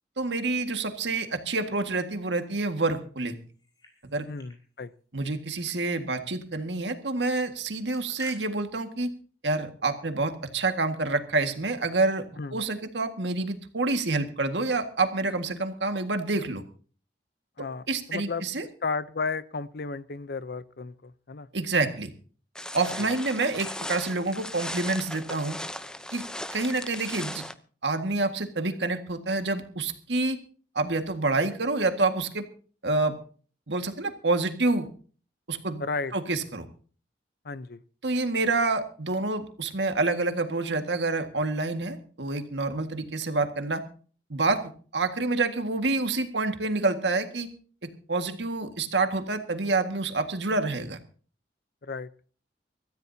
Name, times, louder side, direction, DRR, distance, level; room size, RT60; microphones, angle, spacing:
voice 1, 0.2-3.3 4.0-4.3 5.1-9.1 9.4-12.2 12.5-16.6 17.9-18.6 21.5-22.1 22.7-25.6 26.1-26.2 26.5-27.4 27.8-30.4 30.8-32.5 32.8-33.1 33.7-34.9 35.5-35.8 36.1-36.7 38.0-43.8 44.3-44.6 44.9-47.5 48.1-51.0, right 3 dB, 80° right, 7 dB, 1.8 m, -27 dB
sound 1, 3.5-4.6 4.9-5.0 5.2-5.8 6.1-6.2 6.5-6.7 7.6-8.4, left 1 dB, 25° left, 5.2 m, -52 dB
voice 2, 4.3-4.9 12.4-12.6 17.6-18.4 18.8-21.5 35.8-36.1 37.4-37.8 51.8-52.1, left 4 dB, 60° left, 16 dB, 0.7 m, -33 dB
sound 2, 22.6-27.5, left 1 dB, 5° left, 0.7 m, -37 dB
24.5 x 14.0 x 2.8 m, 0.41 s
head